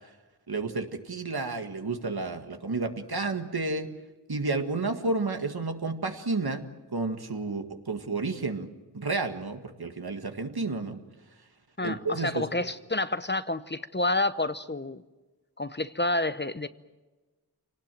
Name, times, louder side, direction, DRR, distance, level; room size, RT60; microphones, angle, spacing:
voice 1, 0.5-3.9 4.3-6.6 6.9-8.7 8.9-11.0 11.8-12.5, right 3 dB, 70° right, 6 dB, 1.9 m, -31 dB
voice 2, 11.8-15.0 15.6-16.7, left 2 dB, 25° left, 13 dB, 0.8 m, -29 dB
26.0 x 19.0 x 9.2 m, 1.2 s
wide cardioid pair, 45°, 39 cm